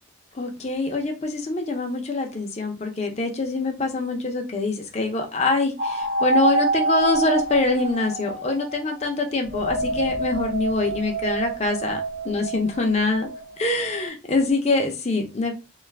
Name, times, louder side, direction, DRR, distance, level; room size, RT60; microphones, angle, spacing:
voice 1, 0.3-13.3 13.6-15.5, left 3 dB, 35° left, 0.5 m, -24 dB
sound 1, 5.8-8.9 9.5-14.1, right 3 dB, 45° right, 0.5 m, -27 dB
2.5 x 2.3 x 3.3 m
head